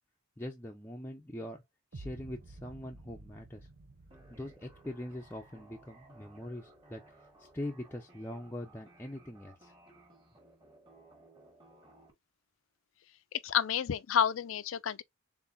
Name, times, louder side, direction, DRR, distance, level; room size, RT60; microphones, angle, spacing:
voice 1, 0.4-1.6 1.9-3.7 4.3-7.0 7.4-9.7, left 1 dB, 10° left, 0.5 m, -42 dB
sound 1, 1.9-7.9, right 2 dB, 55° right, 0.6 m, -53 dB
sound 2, 4.1-12.1, right 2 dB, 20° right, 1.6 m, -59 dB
voice 2, 13.3-15.0, left 8 dB, 80° left, 0.4 m, -30 dB
4.1 x 3.8 x 2.6 m
head